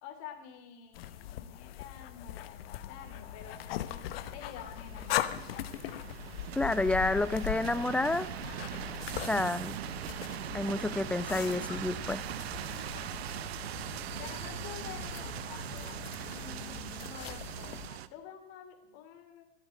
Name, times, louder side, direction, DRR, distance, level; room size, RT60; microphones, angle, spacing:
voice 1, 0.0-5.5 9.2-9.5 12.6-13.5 14.2-15.3 15.7-19.5, left 8 dB, 50° left, 5 dB, 2.9 m, -49 dB
sound 1, 0.9-17.9, left 13 dB, 65° left, 1.0 m, -40 dB
sound 2, 2.9-18.1, right 11 dB, 75° right, 0.8 m, -41 dB
voice 2, 6.6-8.3 9.2-9.8 10.5-12.3, left 2 dB, 5° left, 14 dB, 0.6 m, -29 dB
13.5 x 8.1 x 9.3 m, 0.89 s
hypercardioid pair, 100°, 31 cm